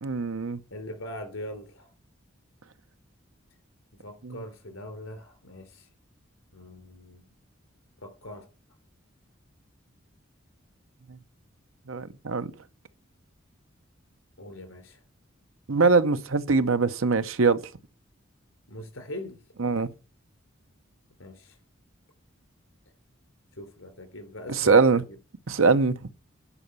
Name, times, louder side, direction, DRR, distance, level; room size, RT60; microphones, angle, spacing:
voice 1, 0.0-0.6 4.2-4.4 11.9-12.5 15.7-17.6 19.6-19.9 24.6-25.0 25.5-25.9, right 4 dB, 90° right, 0.8 m, -22 dB
voice 2, 0.7-1.9 4.0-5.9 6.5-7.2 8.0-8.5 14.4-15.0 18.7-19.4 21.2-21.6 23.5-25.0, left 1 dB, 90° left, 3.8 m, -41 dB
9.9 x 5.3 x 6.8 m
head